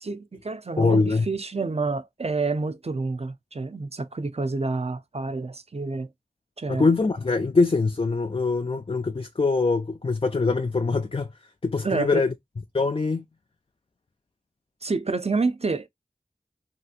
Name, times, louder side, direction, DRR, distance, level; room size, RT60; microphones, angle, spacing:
voice 1, 0.0-6.1 6.6-6.9 11.8-12.2 14.8-15.9, right 3 dB, 45° right, 0.5 m, -28 dB
voice 2, 0.8-1.3 6.7-12.3 12.7-13.2, left 3 dB, 40° left, 0.4 m, -23 dB
3.2 x 2.8 x 2.4 m
wide cardioid pair, 45°, 14 cm